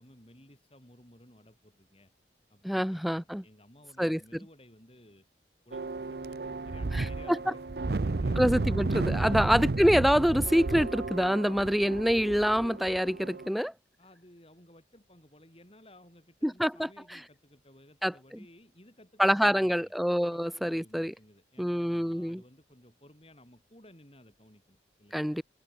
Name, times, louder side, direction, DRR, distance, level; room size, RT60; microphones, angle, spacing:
voice 1, 0.0-2.1 2.5-5.3 5.7-8.4 9.2-9.5 14.0-20.0 20.3-25.4, left 1 dB, 30° left, 7.1 m, -56 dB
voice 2, 2.6-3.4 4.0-4.2 7.3-7.4 8.4-13.7 16.4-16.9 18.0-18.1 19.2-21.1 21.6-22.4 25.1-25.4, equal, ahead, 0.3 m, -26 dB
sound 1, 5.7-13.5, right 3 dB, 55° right, 0.6 m, -32 dB
head